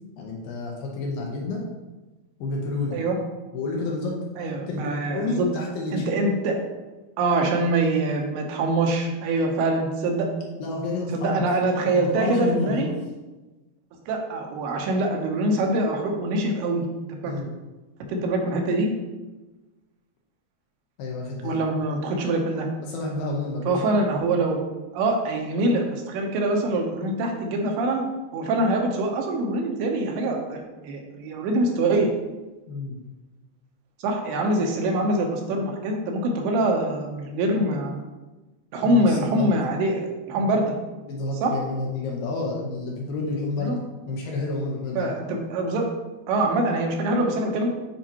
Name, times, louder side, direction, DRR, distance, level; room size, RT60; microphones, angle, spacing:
voice 1, 0.2-1.6 2.4-3.0 3.5-6.2 10.6-11.4 11.9-12.8 17.2-17.5 21.0-21.6 22.8-23.8 32.7-33.0 38.8-39.7 40.4-40.6 41.0-45.1, left 3 dB, 75° left, -1 dB, 2.4 m, -30 dB
voice 2, 4.4-5.5 5.9-6.6 7.2-10.3 11.1-12.9 14.1-16.8 17.1-17.5 18.1-18.9 21.4-22.7 23.7-24.6 24.9-28.0 28.3-32.1 34.0-38.0 38.7-40.7 41.4-41.5 43.6-43.8 44.9-45.9 46.3-47.7, right 2 dB, 80° right, 2 dB, 2.8 m, -24 dB
10.0 x 4.3 x 2.9 m, 1.1 s
omnidirectional pair, 4.7 m